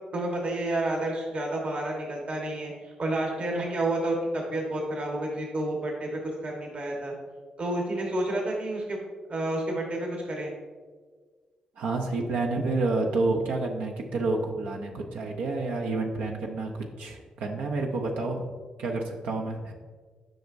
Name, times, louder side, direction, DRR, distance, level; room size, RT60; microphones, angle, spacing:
voice 1, 0.1-7.1 7.6-9.0 9.3-10.5, right 1 dB, 50° right, -1 dB, 1.3 m, -30 dB
voice 2, 11.8-18.5 18.8-19.7, right 3 dB, 85° right, 0 dB, 0.7 m, -29 dB
7.7 x 5.3 x 2.6 m, 1.5 s
supercardioid pair, 60°, 3 cm